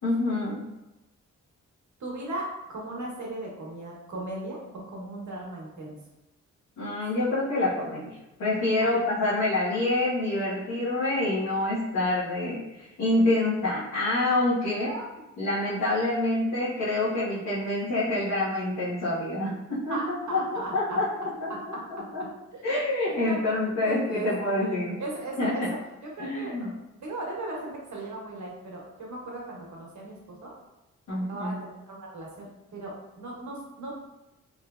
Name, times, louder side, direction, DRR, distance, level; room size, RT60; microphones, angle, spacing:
voice 1, 0.0-0.7 6.8-14.9 15.4-21.8 22.1-22.2 22.6-25.0 25.4-25.7 26.2-26.7 31.1-31.6, left 2 dB, 80° left, -12 dB, 1.4 m, -27 dB
voice 2, 2.0-4.6 4.9-6.0 8.8-8.9 14.9-15.0 19.9-21.0 22.5-22.6 23.1-23.4 23.8-24.3 24.6-25.6 26.1-26.7 27.0-30.5 31.1-33.9, right 2 dB, 60° right, -2 dB, 1.3 m, -37 dB
3.6 x 3.1 x 2.4 m, 0.97 s
supercardioid pair, 55°, 32 cm